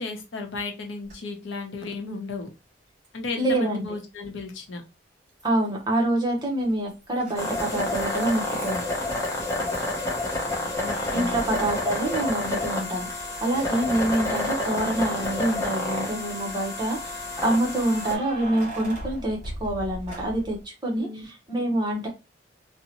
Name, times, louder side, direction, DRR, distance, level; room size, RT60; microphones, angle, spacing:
voice 1, 0.0-2.5 3.1-4.8 10.8-11.4 20.9-21.3, left 3 dB, 80° left, 4 dB, 0.7 m, -34 dB
Keys jangling, 1.1-1.2 3.0-3.1 5.4-5.9 6.2-9.4 10.7-12.8 13.3-13.4 15.2-15.7 17.7-20.6, right 1 dB, 40° right, 1.2 m, -40 dB
voice 2, 3.4-3.9 5.4-8.8 11.1-22.1, right 1 dB, 20° right, -1 dB, 0.7 m, -26 dB
sound 1, 7.4-18.2, left 2 dB, 15° left, 0.6 m, -29 dB
2.7 x 2.0 x 2.8 m, 0.26 s
head